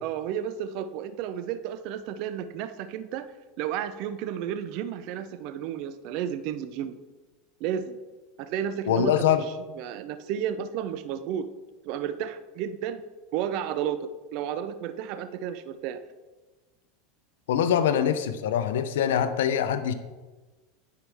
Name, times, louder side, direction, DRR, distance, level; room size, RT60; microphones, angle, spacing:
voice 1, 0.0-3.3 3.6-7.0 7.6-8.0 8.4-9.5 9.8-11.5 11.8-13.0 13.3-16.0, right 9 dB, 55° right, 11 dB, 0.5 m, -32 dB
voice 2, 8.9-9.4 17.5-19.9, left 9 dB, 85° left, 11 dB, 0.6 m, -24 dB
9.7 x 4.7 x 3.4 m, 1.2 s
supercardioid pair, 125°, 0 cm